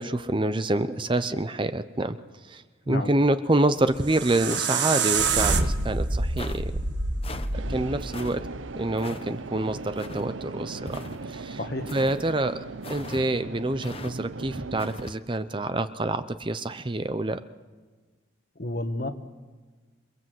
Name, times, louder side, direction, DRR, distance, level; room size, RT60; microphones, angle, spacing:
voice 1, 0.0-2.2 2.5-6.7 7.7-8.4 8.7-11.0 11.3-11.6 11.9-17.4, right 2 dB, 25° right, 11 dB, 0.7 m, -27 dB
sound 1, 3.9-8.9, right 4 dB, 60° right, 1.7 m, -27 dB
sound 2, 4.5-5.0 5.5-5.8 6.4-6.6 7.2-7.5 8.1-8.4 9.0-9.3 10.0-10.3 10.9-11.4 11.9-12.2 12.8-13.3 13.8-14.1 14.8-15.2, left 2 dB, 30° left, 1.1 m, -40 dB
sound 3, 7.5-15.1, right 3 dB, 80° right, 0.7 m, -38 dB
voice 2, 11.6-11.9 18.6-19.1, left 1 dB, 50° left, 7 dB, 1.6 m, -31 dB
28.0 x 22.5 x 7.8 m, 1.3 s
head